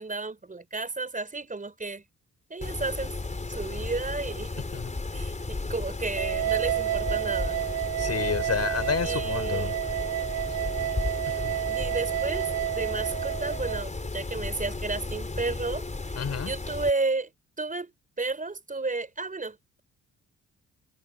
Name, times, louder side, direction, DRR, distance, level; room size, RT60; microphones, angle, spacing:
voice 1, 0.0-2.0 2.5-3.1 3.5-4.7 5.1-7.6 9.0-9.8 11.7-12.5 12.8-17.3 17.6-17.9 18.2-19.8, right 3 dB, 25° right, 5.1 m, -32 dB
Mechanisms, 2.6-16.9, left 3 dB, 25° left, 4.9 m, -34 dB
sound 1, 6.2-13.8, right 13 dB, 50° right, 2.3 m, -30 dB
voice 2, 8.0-9.8 11.4-11.5 16.2-16.5, left 7 dB, 55° left, 7.4 m, -29 dB
cardioid pair, 75°, 31 cm